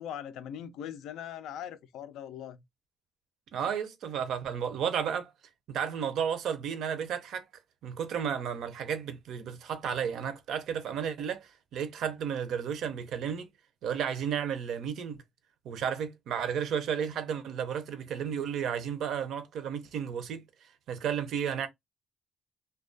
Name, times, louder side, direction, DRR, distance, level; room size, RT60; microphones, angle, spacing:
voice 1, 0.0-2.6, left 9 dB, 85° left, 0.3 m, -40 dB
voice 2, 3.5-5.3 5.7-7.4 7.8-13.5 13.8-15.2 15.6-20.4 20.9-21.7, right 8 dB, 75° right, 0.4 m, -33 dB
2.3 x 2.2 x 2.4 m
cardioid pair, 90°, 0 cm